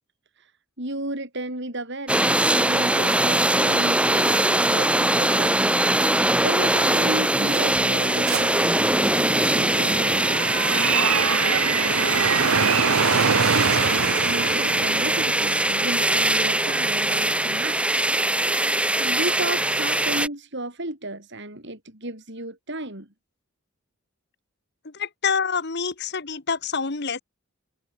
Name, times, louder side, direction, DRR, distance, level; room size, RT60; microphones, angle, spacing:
voice 1, 0.8-5.8 6.4-10.2 10.7-18.0 19.0-23.1, right 1 dB, 55° right, 7.5 m, -34 dB
sound 1, 2.1-20.3, right 1 dB, 5° right, 2.6 m, -22 dB
sound 2, 7.0-17.3, right 6 dB, 85° right, 1.0 m, -26 dB
voice 2, 24.8-27.2, left 5 dB, 50° left, 1.3 m, -27 dB
head